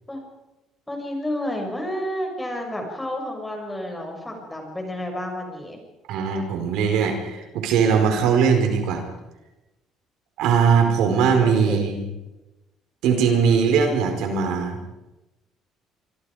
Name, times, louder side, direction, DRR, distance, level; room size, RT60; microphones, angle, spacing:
voice 1, 0.9-5.8 11.4-11.9, left 1 dB, 10° left, 2 dB, 6.6 m, -30 dB
voice 2, 6.1-9.0 10.4-12.0 13.0-14.9, right 6 dB, 80° right, 4 dB, 4.8 m, -20 dB
26.5 x 25.0 x 5.1 m, 1.0 s
cardioid pair, 130°, 0 cm